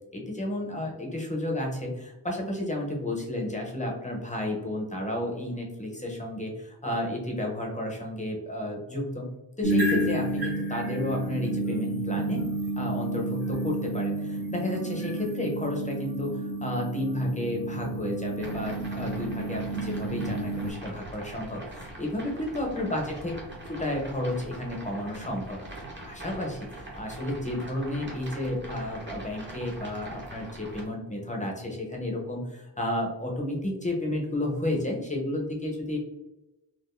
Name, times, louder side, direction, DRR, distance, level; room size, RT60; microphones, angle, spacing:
voice 1, 0.1-9.3 9.6-12.5 12.8-23.3 23.7-25.6 26.0-36.0, left 1 dB, 20° left, 0 dB, 0.6 m, -32 dB
sound 1, 9.6-20.7, right 1 dB, 60° right, 1.1 m, -31 dB
sound 2, 18.4-30.8, right 1 dB, 25° right, 0.8 m, -43 dB
3.7 x 2.4 x 2.5 m, 1.0 s
wide cardioid pair, 140°, 42 cm